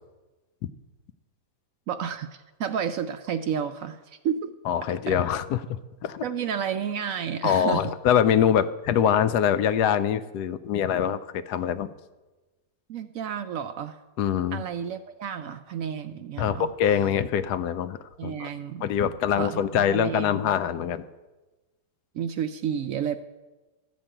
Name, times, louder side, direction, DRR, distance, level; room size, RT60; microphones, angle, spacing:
voice 1, 1.9-4.5 5.1-5.2 6.2-7.9 12.9-14.0 14.5-16.7 18.2-18.9 19.3-20.5 22.1-23.2, right 8 dB, 70° right, 9 dB, 0.8 m, -31 dB
voice 2, 4.7-6.2 7.4-11.9 14.2-14.6 16.4-18.5 18.8-21.0, left 9 dB, 80° left, 13 dB, 1.1 m, -24 dB
12.5 x 5.2 x 8.8 m, 1.2 s
omnidirectional pair, 1.8 m